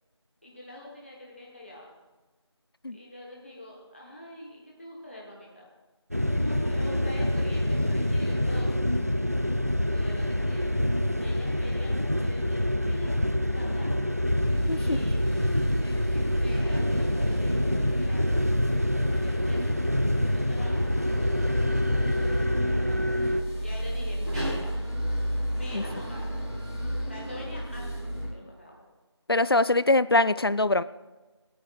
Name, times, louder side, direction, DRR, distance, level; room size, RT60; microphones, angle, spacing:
voice 1, 0.4-1.9 2.9-5.7 6.4-8.8 9.9-10.7 11.2-13.9 14.8-15.5 15.8-18.2 18.7-19.7 20.2-21.3 22.6-23.0 23.6-24.8 25.6-26.5 27.1-28.8, left 1 dB, 25° left, -3 dB, 1.1 m, -44 dB
sound 1, 6.1-23.4, left 1 dB, 35° right, 0.4 m, -26 dB
sound 2, 14.4-28.3, equal, 5° right, 2.6 m, -33 dB
voice 2, 14.7-15.0 25.7-25.8 29.3-30.8, left 2 dB, 55° left, 17 dB, 0.4 m, -23 dB
27.5 x 9.4 x 2.3 m, 1.2 s
figure-of-eight pair, 175°, 15 cm